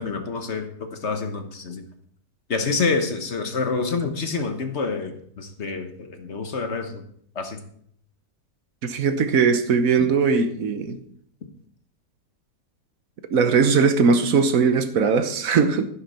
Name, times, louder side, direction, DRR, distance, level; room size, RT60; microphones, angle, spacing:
voice 1, 0.0-1.8 2.5-7.0 7.3-7.6 10.0-10.1, left 4 dB, 45° left, 6 dB, 1.4 m, -27 dB
voice 2, 8.8-11.0 13.3-15.9, right 5 dB, 65° right, 10 dB, 1.3 m, -20 dB
11.5 x 10.5 x 4.3 m, 0.65 s
omnidirectional pair, 1.7 m